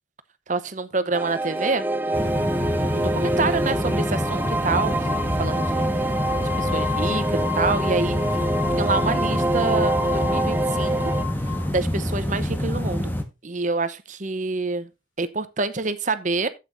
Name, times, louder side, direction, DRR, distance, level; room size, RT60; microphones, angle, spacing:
voice 1, 0.5-2.5 2.9-5.8 6.6-8.2 8.8-11.0 11.7-13.1 13.4-14.9 15.2-16.5, right 3 dB, 40° right, 0.9 m, -27 dB
sound 1, 1.1-11.2, right 2 dB, 10° right, 0.4 m, -26 dB
sound 2, 2.1-13.2, equal, 10° left, 1.4 m, -27 dB
sound 3, 4.0-11.7, left 9 dB, 85° left, 3.5 m, -34 dB
13.0 x 8.5 x 2.6 m
head